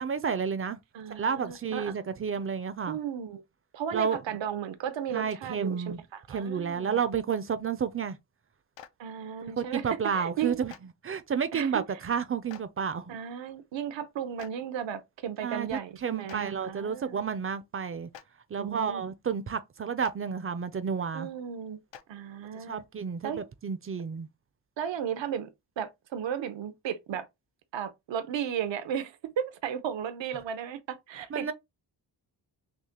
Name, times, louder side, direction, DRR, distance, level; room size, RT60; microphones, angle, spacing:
voice 1, 0.0-0.8 1.2-3.0 3.9-4.2 5.1-6.0 6.3-8.2 9.6-10.7 11.0-13.1 15.4-15.7 16.0-18.1 18.5-21.3 22.7-24.3 31.3-31.5, right 6 dB, 35° right, 0.4 m, -31 dB
voice 2, 0.9-2.0 2.9-3.4 3.7-7.0 9.0-9.9 10.1-10.6 11.5-11.8 13.1-17.2 18.6-19.0 21.1-21.8 22.1-22.8 23.2-23.4 24.8-25.5 25.8-27.3 27.7-31.5, right 8 dB, 90° right, 0.7 m, -35 dB
Clapping, 8.7-8.9 10.7-10.8 12.5-12.6 14.4-14.5 16.3-16.4 18.1-18.2 20.0-20.1 21.9-22.0, left 9 dB, 80° left, 0.6 m, -45 dB
6.1 x 2.1 x 2.8 m
wide cardioid pair, 155°, 44 cm